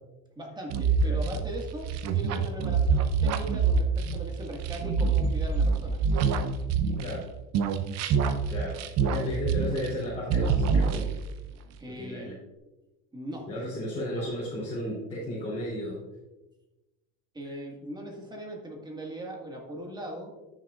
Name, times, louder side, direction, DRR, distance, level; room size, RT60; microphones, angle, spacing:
voice 1, 0.3-6.0 11.8-12.3 13.1-13.5 17.3-20.3, equal, 15° right, 0 dB, 1.8 m, -39 dB
sound 1, 0.7-7.2 7.5-10.0 10.3-11.4, right 5 dB, 60° right, 0.7 m, -26 dB
voice 2, 8.4-11.1 11.9-12.4 13.5-16.0 17.4-17.6, left 1 dB, 20° left, -9 dB, 3.1 m, -34 dB
13.0 x 6.4 x 2.4 m, 1.1 s
cardioid pair, 125°, 30 cm